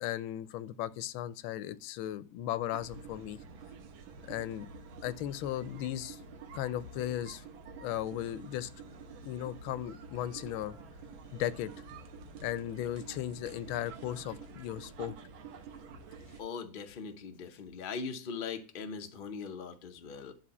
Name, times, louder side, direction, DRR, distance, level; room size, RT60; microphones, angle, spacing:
voice 1, 0.0-3.4 4.3-4.7 5.0-6.2 6.5-7.4 7.8-8.7 9.2-10.8 11.3-11.8 12.4-15.1, left 12 dB, 90° left, 1.4 m, -36 dB
sound 1, 2.7-16.4, right 4 dB, 80° right, 1.7 m, -49 dB
voice 2, 16.4-20.3, left 5 dB, 65° left, 0.5 m, -40 dB
10.5 x 3.7 x 4.1 m
omnidirectional pair, 2.2 m